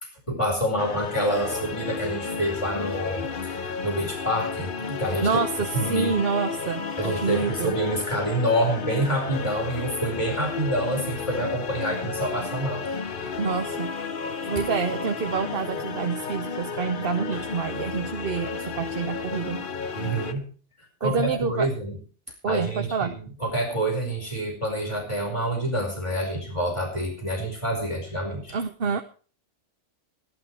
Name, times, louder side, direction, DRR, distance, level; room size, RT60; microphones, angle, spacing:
voice 1, 0.3-5.4 5.7-6.1 7.0-12.8 19.9-20.5 21.0-22.0 22.5-23.1 23.4-28.6, right 1 dB, 25° left, 0 dB, 4.8 m, -27 dB
sound 1, 0.8-20.3, left 5 dB, 50° left, 1.1 m, -33 dB
voice 2, 5.2-7.7 13.4-13.9 14.4-19.6 21.0-21.7 22.4-23.1 28.5-29.0, right 5 dB, 55° right, 6 dB, 1.0 m, -27 dB
15.5 x 12.0 x 4.7 m, 0.40 s
omnidirectional pair, 1.2 m